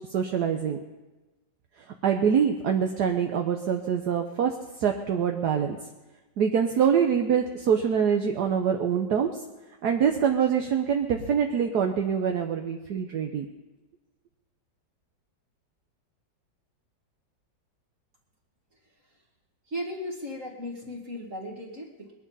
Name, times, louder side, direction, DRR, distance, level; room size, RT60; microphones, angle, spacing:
voice 1, 0.1-0.8 2.0-5.8 6.4-9.3 9.8-13.5, right 7 dB, 65° right, 4 dB, 1.4 m, -25 dB
voice 2, 19.7-22.1, equal, 45° right, -2 dB, 2.4 m, -36 dB
20.5 x 11.0 x 5.5 m, 1.1 s
omnidirectional pair, 1.9 m